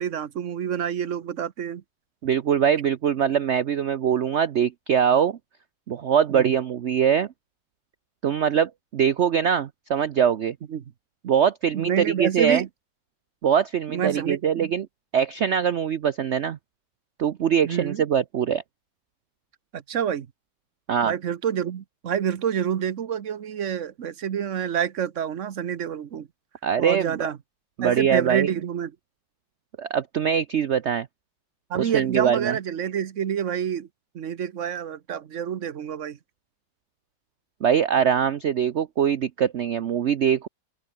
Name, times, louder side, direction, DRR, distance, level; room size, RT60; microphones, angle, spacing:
voice 1, 0.0-1.8 6.3-6.5 10.7-10.8 11.7-12.7 13.9-14.7 17.6-18.0 19.7-20.3 21.0-26.3 26.8-27.4 27.8-28.9 31.7-33.9 34.1-36.2, right 8 dB, 50° right, 1.1 m, -28 dB
voice 2, 2.2-5.4 5.9-7.3 8.2-10.6 11.2-12.7 13.4-14.9 15.1-16.6 17.2-18.6 20.9-21.1 26.6-27.3 27.8-28.5 29.8-31.1 31.8-32.6 37.6-40.5, right 8 dB, 80° right, 0.6 m, -22 dB
open air
omnidirectional pair, 2.0 m